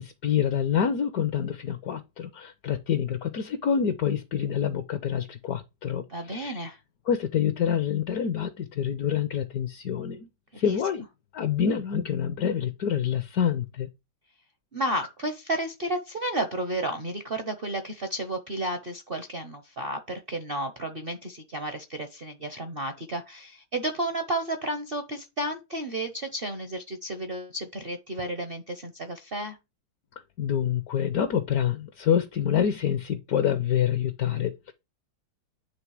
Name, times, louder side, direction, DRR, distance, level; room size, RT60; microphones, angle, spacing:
voice 1, 0.0-6.6 7.1-10.3 10.6-11.1 11.3-13.9 30.4-34.7, left 8 dB, 70° left, 0.9 m, -27 dB
voice 2, 6.1-6.8 10.6-10.8 14.7-29.6, right 1 dB, 55° right, 0.6 m, -32 dB
9.5 x 3.2 x 4.7 m
omnidirectional pair, 2.3 m